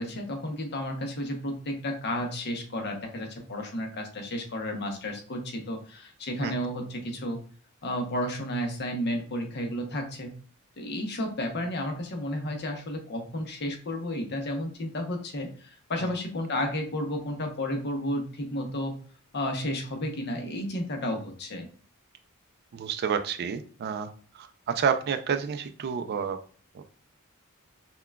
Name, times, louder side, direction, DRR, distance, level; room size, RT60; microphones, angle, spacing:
voice 1, 0.0-7.4 7.8-10.3 10.8-19.0 19.3-21.7, left 1 dB, 50° left, 4 dB, 0.7 m, -32 dB
voice 2, 22.7-24.1 24.3-26.4 26.7-26.8, right 6 dB, 50° right, 9 dB, 0.3 m, -29 dB
5.7 x 2.2 x 2.2 m, 0.42 s
head